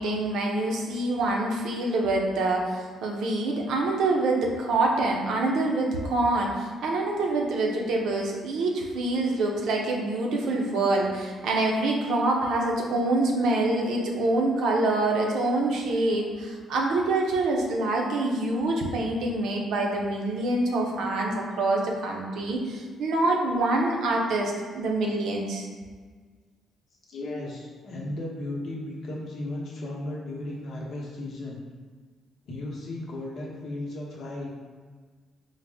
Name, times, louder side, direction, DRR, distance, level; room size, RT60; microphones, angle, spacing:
voice 1, 0.0-25.7, right 2 dB, 80° right, 0 dB, 0.6 m, -26 dB
voice 2, 27.1-31.6 32.5-34.5, left 1 dB, 65° left, -3 dB, 0.9 m, -35 dB
4.0 x 2.0 x 3.3 m, 1.5 s
cardioid pair, 90°, 0 cm